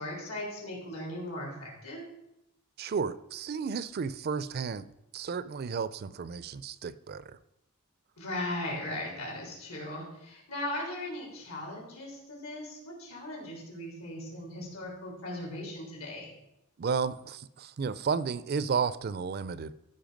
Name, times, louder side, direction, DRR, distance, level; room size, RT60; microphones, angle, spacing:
voice 1, 0.0-2.0 8.2-16.3, left 1 dB, 80° left, -2 dB, 4.3 m, -38 dB
voice 2, 2.8-7.4 16.8-19.7, right 5 dB, 45° right, 16 dB, 0.4 m, -33 dB
14.0 x 5.5 x 5.2 m, 0.86 s
head